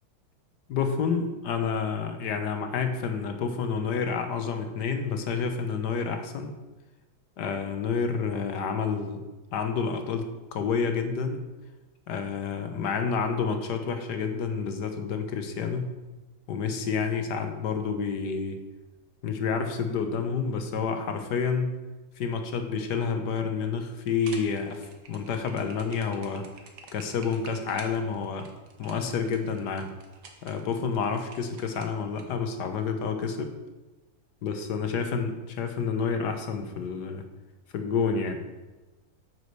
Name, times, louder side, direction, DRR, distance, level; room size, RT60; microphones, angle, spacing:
voice 1, 0.7-6.5 7.4-9.2 9.5-10.3 10.5-11.4 12.1-15.9 16.5-18.6 19.2-21.7 22.2-26.4 26.9-28.5 28.8-29.9 30.4-33.5 34.4-37.2 37.7-38.4, left 5 dB, 65° left, 6 dB, 1.4 m, -29 dB
sound 1, 24.1-32.2, right 4 dB, 60° right, 1.6 m, -48 dB
9.4 x 4.9 x 6.4 m, 1.1 s
omnidirectional pair, 2.2 m